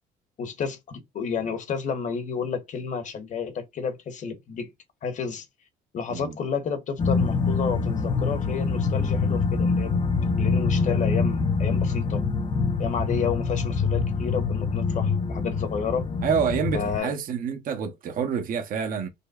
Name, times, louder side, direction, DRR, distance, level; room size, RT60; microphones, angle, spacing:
voice 1, 0.4-4.7 5.0-5.4 5.9-9.9 10.4-12.2 12.8-16.1 16.7-17.1, left 6 dB, 45° left, 1.1 m, -31 dB
sound 1, 7.0-17.0, left 4 dB, 30° left, 0.5 m, -25 dB
voice 2, 16.2-19.1, right 7 dB, 55° right, 0.8 m, -27 dB
5.2 x 2.2 x 2.3 m
cardioid pair, 110°, 17 cm